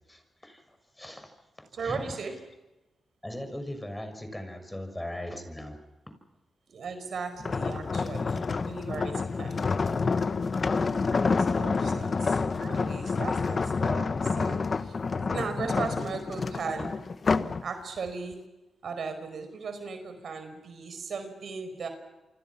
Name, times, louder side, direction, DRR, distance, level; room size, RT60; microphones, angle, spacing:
voice 1, 0.1-2.1 3.2-5.8, left 1 dB, 10° left, 8 dB, 6.3 m, -39 dB
voice 2, 1.7-2.3 6.7-9.6 11.1-16.9 17.6-18.4 18.8-21.9, right 5 dB, 65° right, 8 dB, 5.1 m, -37 dB
sound 1, 7.4-17.6 18.1-18.3, left 4 dB, 45° left, 1.2 m, -28 dB
28.5 x 25.0 x 6.0 m, 1.0 s
cardioid pair, 65°, 0 cm